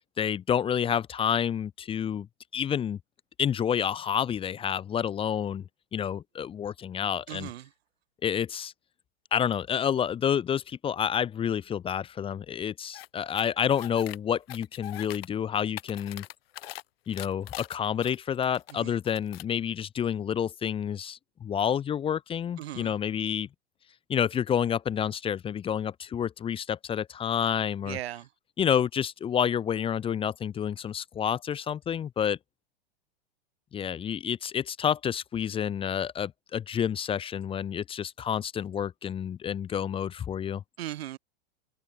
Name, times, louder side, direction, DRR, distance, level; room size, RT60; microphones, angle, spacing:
voice 1, 0.2-2.3 2.5-3.0 3.4-5.6 5.9-7.5 8.2-8.7 9.3-16.2 17.1-23.5 24.1-28.0 28.6-32.4 33.7-40.6, left 8 dB, 15° left, 1.1 m, -29 dB
voice 2, 7.3-7.7 18.7-18.9 22.6-22.9 27.8-28.3 40.8-41.2, right 13 dB, 80° right, 2.2 m, -38 dB
sound 1, 12.9-13.1 13.3-14.2 14.5-15.3 15.6-16.8 17.1-18.7 19.0-19.5, left 15 dB, 70° left, 3.6 m, -42 dB
open air
supercardioid pair, 150°, 31 cm